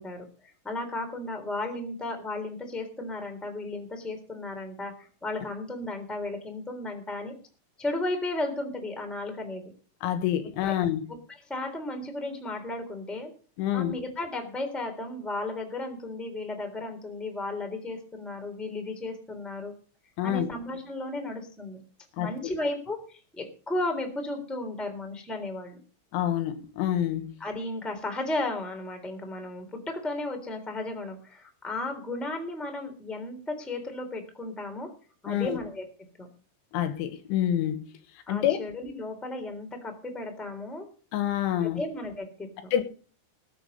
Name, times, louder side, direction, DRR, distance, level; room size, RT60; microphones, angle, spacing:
voice 1, 0.0-7.3 7.8-9.6 10.6-10.7 11.5-13.3 13.7-19.7 20.2-21.8 22.2-25.8 27.4-34.9 35.2-35.8 36.2-36.3 38.3-40.8 41.6-42.7, left 2 dB, ahead, 2.4 m, -34 dB
voice 2, 10.0-11.1 13.6-14.0 20.2-20.5 22.2-22.5 26.1-27.3 35.3-35.6 36.7-37.9 38.3-38.6 41.1-41.8 42.7-42.8, left 11 dB, 80° left, 3.6 m, -27 dB
20.5 x 7.2 x 5.4 m
omnidirectional pair, 5.6 m